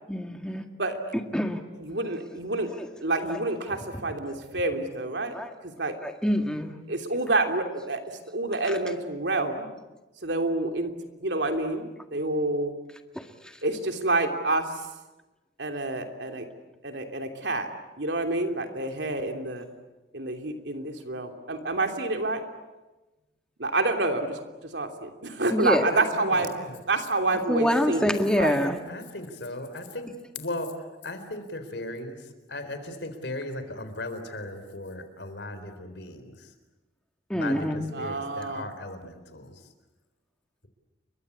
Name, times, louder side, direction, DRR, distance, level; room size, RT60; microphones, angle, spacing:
voice 1, 0.1-0.6 1.1-1.6 2.8-2.9 3.3-3.4 5.2-5.5 6.0-6.7 8.6-8.8 25.5-25.8 27.3-28.8 37.3-37.9, equal, 5° left, 5 dB, 2.0 m, -26 dB
voice 2, 1.8-2.7 3.0-5.4 5.6-5.9 6.9-9.7 10.2-10.9 11.2-12.7 13.6-14.7 15.6-16.5 16.8-17.7 18.0-19.7 20.1-22.4 23.6-24.4 24.7-26.5 26.9-28.6 37.9-38.7, right 2 dB, 75° right, 5 dB, 3.1 m, -28 dB
voice 3, 25.9-26.8 28.6-30.1 30.3-36.5 37.3-39.6, left 2 dB, 70° left, 9 dB, 4.0 m, -37 dB
30.0 x 23.5 x 8.4 m, 1.1 s
head